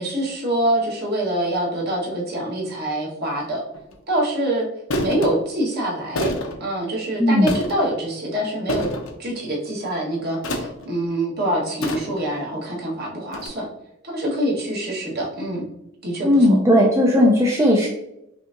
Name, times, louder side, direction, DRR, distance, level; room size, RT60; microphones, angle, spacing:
voice 1, 0.0-3.6 4.1-4.6 5.0-6.3 6.6-8.9 9.2-13.7 14.0-15.7 16.0-16.6, right 1 dB, 50° right, -3 dB, 1.2 m, -25 dB
sound 1, 3.7-4.0 4.9-5.3 6.2-6.6 7.4-7.9 8.7-9.1 10.4-10.9 11.8-12.3 13.3-13.5, left 1 dB, 70° left, 0.7 m, -27 dB
voice 2, 16.2-17.9, left 1 dB, 15° right, -3 dB, 0.4 m, -16 dB
5.5 x 2.7 x 2.5 m, 0.84 s
head